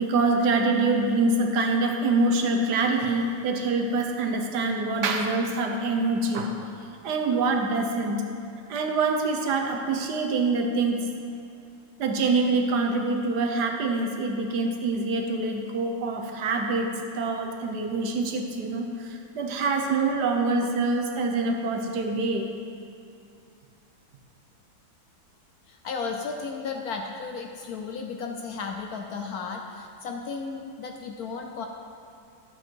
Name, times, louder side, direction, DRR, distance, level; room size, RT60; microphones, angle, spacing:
voice 1, 0.0-6.7 7.0-8.2 8.7-11.1 12.0-22.5, right 3 dB, 65° right, 2 dB, 1.4 m, -25 dB
voice 2, 25.7-31.7, left 5 dB, 70° left, 3 dB, 0.9 m, -34 dB
11.5 x 8.0 x 4.5 m, 2.5 s
omnidirectional pair, 2.0 m